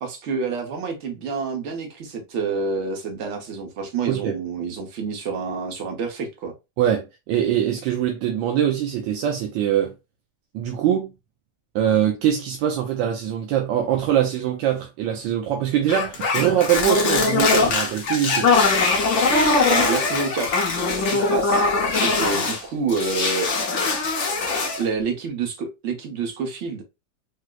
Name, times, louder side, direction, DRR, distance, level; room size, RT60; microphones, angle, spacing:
voice 1, 0.0-6.5 19.7-20.7 20.9-21.7 21.9-23.5 24.8-26.8, right 4 dB, 50° right, 0.9 m, -28 dB
voice 2, 6.8-9.9 10.5-11.1 11.7-18.5, right 10 dB, 85° right, 1.3 m, -23 dB
sound 1, 15.9-22.6 22.9-24.9, left 3 dB, 55° left, 0.9 m, -21 dB
4.6 x 2.0 x 2.2 m
omnidirectional pair, 2.0 m